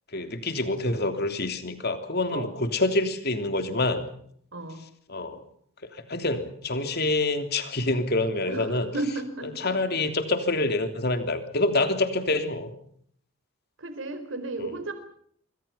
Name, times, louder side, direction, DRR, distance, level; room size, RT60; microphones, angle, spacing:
voice 1, 0.1-4.1 5.1-5.4 5.9-8.9 9.4-12.7 14.6-14.7, left 2 dB, 50° left, 8 dB, 3.2 m, -26 dB
voice 2, 4.5-4.8 8.5-9.7 13.8-14.9, right 2 dB, 60° right, 9 dB, 4.2 m, -34 dB
27.0 x 24.0 x 5.7 m, 0.64 s
head